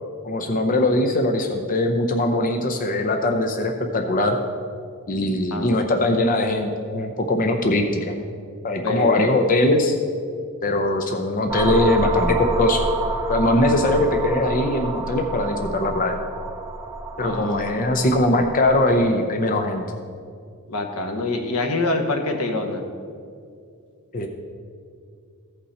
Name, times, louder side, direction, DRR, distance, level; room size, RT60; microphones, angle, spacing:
voice 1, 0.2-4.4 5.1-8.1 8.6-10.0 10.6-12.8 13.3-16.2 17.2-19.8 24.1-24.3, left 1 dB, 40° left, 4 dB, 0.6 m, -21 dB
voice 2, 5.5-6.2 8.8-9.3 17.2-17.8 20.7-22.8, left 2 dB, 85° left, 4 dB, 1.1 m, -26 dB
sound 1, 11.5-19.1, right 2 dB, 15° right, 0.7 m, -29 dB
14.5 x 5.6 x 4.2 m, 2.3 s
head